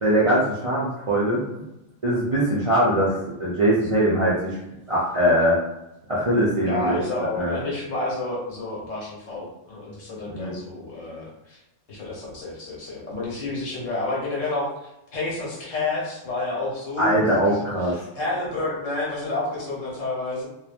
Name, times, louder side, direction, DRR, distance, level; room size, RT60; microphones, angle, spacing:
voice 1, 0.0-1.7 2.0-4.6 4.9-5.6 6.1-7.0 7.3-7.6 10.3-10.6 17.0-18.0, right 1 dB, 45° right, -8 dB, 0.4 m, -22 dB
voice 2, 6.7-11.6 11.9-20.4, left 2 dB, 80° left, -5 dB, 1.4 m, -30 dB
3.0 x 2.3 x 2.4 m, 0.91 s
omnidirectional pair, 1.3 m